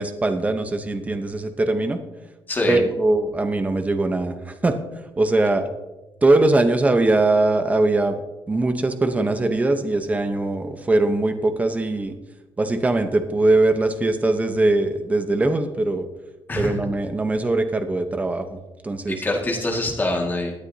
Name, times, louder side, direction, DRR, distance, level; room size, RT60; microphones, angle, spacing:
voice 1, 0.0-2.0 2.7-4.7 5.2-5.6 6.2-12.1 12.6-16.1 16.5-18.6 18.8-19.2, right 2 dB, 15° right, 7 dB, 0.9 m, -21 dB
voice 2, 2.5-2.8 16.5-16.7 19.1-20.5, left 2 dB, 20° left, 0 dB, 1.9 m, -24 dB
18.0 x 9.6 x 2.8 m, 1.0 s
cardioid pair, 165°, 9 cm